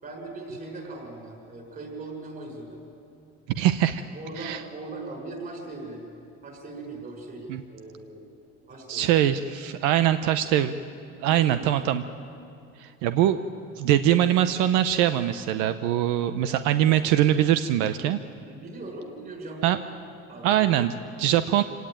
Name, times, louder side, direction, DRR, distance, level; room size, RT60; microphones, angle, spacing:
voice 1, 0.0-2.9 4.1-6.0 6.4-8.4 8.7-9.2 11.2-11.8 18.4-19.8 20.3-20.6, right 2 dB, 30° right, 1 dB, 6.2 m, -39 dB
voice 2, 3.6-4.0 4.4-4.6 7.5-7.6 8.9-10.7 11.2-12.0 12.8-13.4 13.8-18.2 19.6-19.8 20.4-21.6, right 11 dB, 85° right, 10 dB, 0.9 m, -22 dB
26.5 x 17.5 x 9.1 m, 2.5 s
cardioid pair, 145°, 29 cm